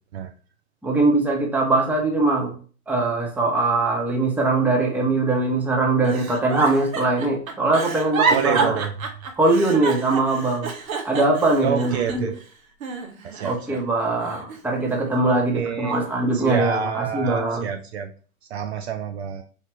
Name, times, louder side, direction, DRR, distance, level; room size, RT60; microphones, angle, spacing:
voice 1, 0.8-2.5 2.9-8.8 9.4-10.7 11.0-12.3 13.4-17.7, right 2 dB, 5° right, 0 dB, 0.7 m, -21 dB
Giggle, 6.0-12.4 12.8-13.8 14.2-15.3 15.9-16.2, right 5 dB, 65° right, 0.9 m, -29 dB
voice 2, 8.3-8.9 11.6-12.3 13.2-13.8 15.2-16.0 16.3-18.1 18.5-19.4, right 7 dB, 50° right, 6 dB, 0.5 m, -28 dB
4.7 x 2.8 x 3.0 m, 0.39 s
figure-of-eight pair, 100°, 44 cm